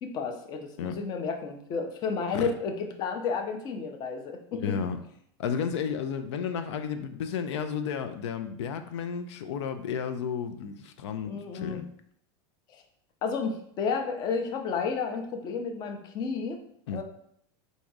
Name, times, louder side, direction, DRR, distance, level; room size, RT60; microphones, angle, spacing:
voice 1, 0.0-4.7 11.2-11.8 12.7-12.8 13.2-16.6 16.9-17.0, left 5 dB, 30° left, 4 dB, 0.5 m, -32 dB
voice 2, 4.5-5.0 5.4-11.8 16.9-17.0, left 7 dB, 90° left, 8 dB, 0.5 m, -32 dB
3.7 x 2.7 x 4.6 m, 0.66 s
supercardioid pair, 160°, 14 cm